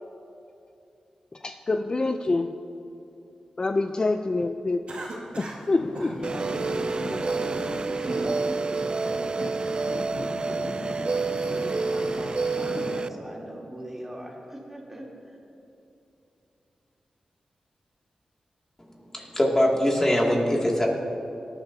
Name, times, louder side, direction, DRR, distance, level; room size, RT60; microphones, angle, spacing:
voice 1, 1.4-2.5 3.6-5.0 5.4-6.1, left 3 dB, 40° left, 7 dB, 0.4 m, -26 dB
Cough, 4.9-5.7 5.9-6.2 6.8-7.2 7.7-8.4, right 2 dB, 70° right, 2.2 m, -37 dB
Traffic noise roadway noise / Engine, 5.8-13.0, left 2 dB, 60° left, 1.3 m, -37 dB
voice 2, 5.9-15.4, right 1 dB, 15° right, -3 dB, 3.1 m, -41 dB
sound 1, 6.2-13.1, right 4 dB, 45° right, 0.3 m, -29 dB
voice 3, 18.8-20.9, left 1 dB, 25° left, -2 dB, 2.3 m, -23 dB
18.0 x 10.5 x 2.8 m, 2.8 s
cardioid pair, 50°, 2 cm